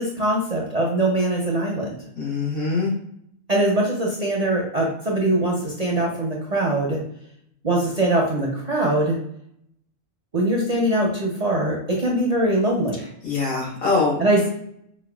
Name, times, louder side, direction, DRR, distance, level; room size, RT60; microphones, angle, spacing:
voice 1, 0.0-2.0 3.5-7.0 7.6-9.2 10.3-13.0 14.2-14.5, right 1 dB, 45° right, -3 dB, 0.5 m, -22 dB
voice 2, 2.2-2.9 13.2-14.2, left 3 dB, 85° left, -5 dB, 1.9 m, -23 dB
5.1 x 2.2 x 2.2 m, 0.72 s
omnidirectional pair, 1.4 m